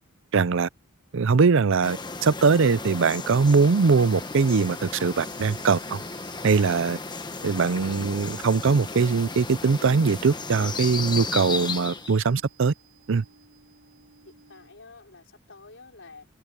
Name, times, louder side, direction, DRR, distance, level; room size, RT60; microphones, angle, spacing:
voice 1, 0.3-0.7 1.1-6.0 6.4-7.0 7.4-12.7 13.1-13.2, right 5 dB, 60° right, 0.5 m, -21 dB
sound 1, 1.1-15.0, right 8 dB, 75° right, 6.4 m, -55 dB
sound 2, 1.8-12.3, left 4 dB, 20° left, 1.1 m, -35 dB
voice 2, 14.2-16.3, left 3 dB, 60° left, 5.6 m, -49 dB
head